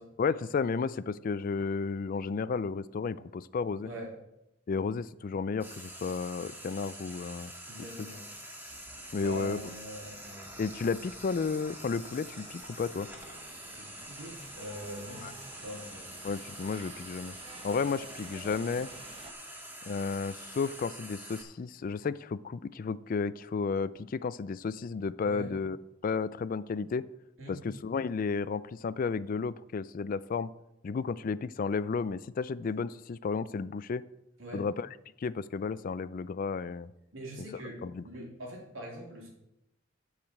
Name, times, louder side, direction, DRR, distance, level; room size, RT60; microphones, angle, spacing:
voice 1, 0.2-3.9 4.7-7.5 9.1-9.6 10.6-13.1 15.2-15.3 16.2-17.4 17.6-18.9 19.9-25.8 26.0-27.0 27.5-30.5 30.8-34.0 34.5-34.9 35.2-36.9 37.8-38.0, left 5 dB, 45° left, 17 dB, 0.3 m, -32 dB
voice 2, 3.8-4.1 7.7-8.3 9.2-10.5 13.7-16.1 16.8-16.9 25.2-25.5 27.4-27.6 34.4-34.7 37.1-39.3, right 1 dB, 75° right, -1 dB, 3.0 m, -43 dB
Frying (food), 5.6-21.4, right 1 dB, 10° right, 1.7 m, -46 dB
sound 1, 8.7-19.3, right 3 dB, 25° right, 0.7 m, -52 dB
10.5 x 4.9 x 8.0 m, 0.88 s
head